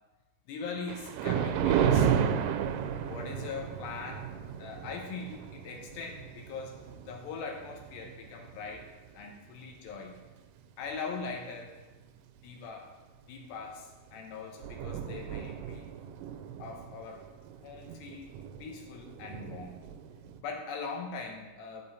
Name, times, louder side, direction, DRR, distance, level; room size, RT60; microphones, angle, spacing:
voice 1, 0.5-2.5 3.0-4.3 4.6-6.8 7.1-8.9 9.1-10.2 10.8-11.8 12.4-13.0 13.3-15.9 16.6-17.3 17.6-19.9 20.4-21.8, left 4 dB, 75° left, 2 dB, 2.7 m, -41 dB
Thunder, 0.9-9.4 9.9-10.2 10.9-11.0 11.3-11.4 13.6-13.8 14.1-14.2 14.4-20.4, right 8 dB, 85° right, 3.0 m, -33 dB
8.4 x 8.4 x 4.1 m, 1.2 s
omnidirectional pair, 5.7 m